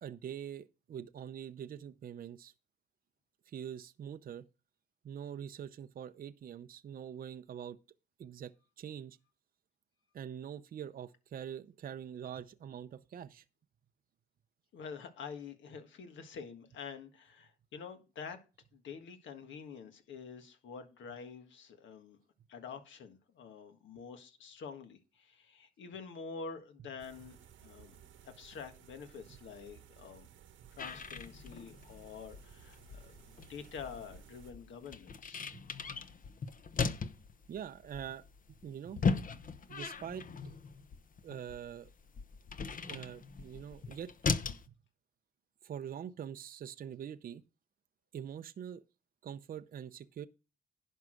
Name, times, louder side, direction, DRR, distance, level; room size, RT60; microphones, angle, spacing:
voice 1, 0.0-2.5 3.5-4.5 5.0-7.8 8.2-9.2 10.1-13.4 35.5-35.6 37.5-39.0 39.7-40.5 41.2-41.9 42.8-44.3 45.6-47.4 48.1-48.8 49.2-50.3, right 9 dB, 45° right, 0.6 m, -44 dB
voice 2, 14.7-18.4 18.7-22.2 22.5-27.4 27.6-30.3 30.8-35.4, left 6 dB, 70° left, 1.6 m, -47 dB
sound 1, 27.0-34.5, right 9 dB, 75° right, 1.1 m, -58 dB
sound 2, 30.8-44.7, left 5 dB, 45° left, 0.9 m, -38 dB
11.0 x 4.7 x 6.2 m
cardioid pair, 90°, 20 cm